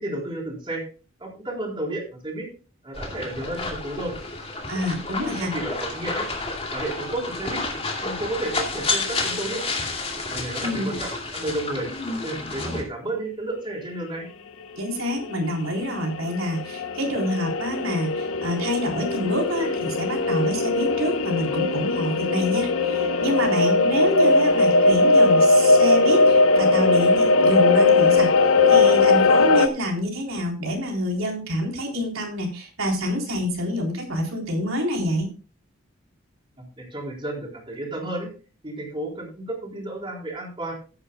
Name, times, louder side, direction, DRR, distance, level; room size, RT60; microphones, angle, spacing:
voice 1, 0.0-0.8 1.2-2.5 2.8-4.2 5.2-6.2 6.7-7.6 8.0-9.6 10.3-11.9 12.2-14.3 36.6-38.3 38.6-40.7, right 1 dB, 25° right, -1 dB, 4.1 m, -32 dB
sound 1, 2.9-12.8, left 3 dB, 30° left, 2.5 m, -30 dB
voice 2, 4.7-5.5 10.6-10.9 14.8-35.3, equal, 80° right, 0 dB, 3.8 m, -27 dB
sound 2, 15.2-15.3 15.5-15.6 15.9-29.7, left 3 dB, 90° left, 0.9 m, -19 dB
16.5 x 9.8 x 2.3 m, 0.33 s
head